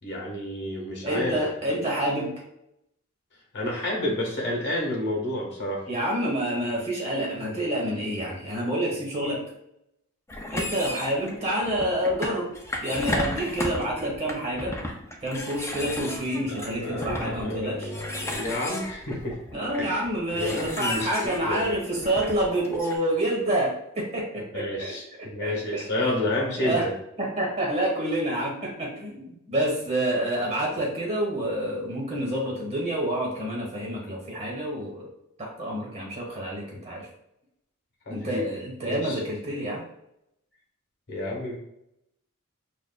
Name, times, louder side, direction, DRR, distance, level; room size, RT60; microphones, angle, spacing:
voice 1, 0.0-1.4 3.5-5.8 16.3-19.4 19.8-20.0 20.3-21.7 24.5-26.9 38.1-39.2 41.1-41.6, left 1 dB, 50° left, -2 dB, 1.2 m, -30 dB
voice 2, 1.0-2.3 5.9-9.4 10.5-12.5 12.8-14.8 15.2-17.9 19.5-26.2 26.6-26.9 27.2-35.1 35.4-37.1 38.1-39.9, right 1 dB, 30° right, -2 dB, 1.4 m, -28 dB
sound 1, 10.3-23.0, left 1 dB, 15° left, 0.4 m, -34 dB
6.0 x 2.5 x 2.3 m, 0.79 s
head